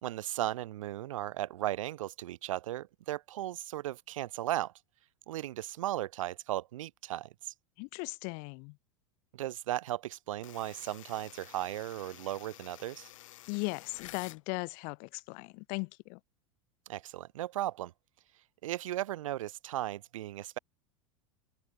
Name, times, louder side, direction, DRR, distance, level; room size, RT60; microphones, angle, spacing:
voice 1, 0.0-4.7 5.3-7.5 9.3-13.1 16.9-17.9 18.6-20.6, right 14 dB, 75° right, 0.5 m, -36 dB
voice 2, 7.8-8.8 13.5-16.2, left 38 dB, 55° left, 1.0 m, -38 dB
sound 1, 10.4-14.4, left 15 dB, 75° left, 2.3 m, -51 dB
hypercardioid pair, 95°, 17 cm